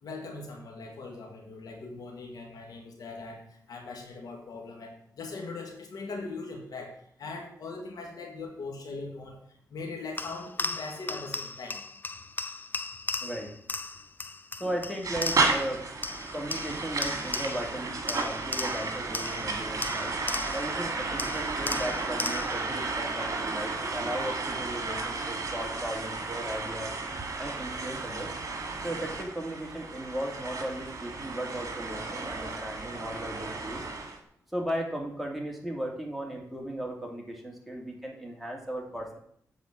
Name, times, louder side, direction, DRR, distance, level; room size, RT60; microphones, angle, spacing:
voice 1, 0.0-9.4 9.7-11.8, left 3 dB, 75° left, 2 dB, 1.8 m, -40 dB
sound 1, 10.2-15.7 16.0-17.8 18.1-20.8 21.2-22.7, left 3 dB, 30° left, 0.5 m, -36 dB
voice 2, 14.6-15.8 16.3-20.1 20.5-26.9 27.4-28.3 28.8-33.8 34.5-39.2, right 1 dB, ahead, 0 dB, 2.4 m, -36 dB
sound 2, 15.0-34.2, right 3 dB, 55° right, 1.8 m, -33 dB
8.5 x 4.3 x 7.2 m, 0.67 s
cardioid pair, 70°, 7 cm